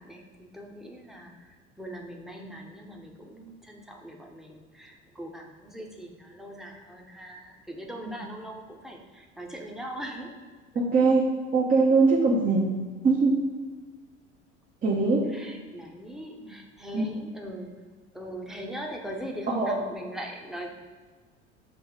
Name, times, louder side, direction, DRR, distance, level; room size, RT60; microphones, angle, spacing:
voice 1, 0.0-10.3 15.3-17.8 18.1-20.7, equal, ahead, 0 dB, 1.0 m, -41 dB
voice 2, 10.7-11.3 11.5-12.7 13.0-13.4 14.8-15.3 16.9-17.1 19.5-19.8, right 3 dB, 25° right, -4 dB, 0.9 m, -22 dB
6.9 x 3.1 x 4.8 m, 1.5 s
figure-of-eight pair, 65°, 35 cm